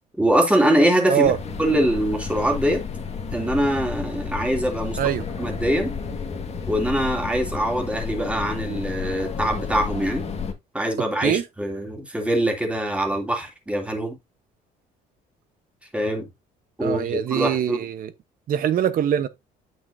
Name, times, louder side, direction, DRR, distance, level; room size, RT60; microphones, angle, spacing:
voice 1, 0.2-1.3 1.6-2.8 3.3-5.0 5.4-5.9 6.7-10.2 10.7-14.2 15.9-16.3 16.8-17.8, right 1 dB, 5° right, 2.9 m, -23 dB
sound 1, 1.2-10.5, left 6 dB, 40° left, 1.7 m, -31 dB
voice 2, 16.8-18.1 18.5-19.3, right 10 dB, 55° right, 1.0 m, -23 dB
9.0 x 6.1 x 2.7 m
cardioid pair, 110°, 17 cm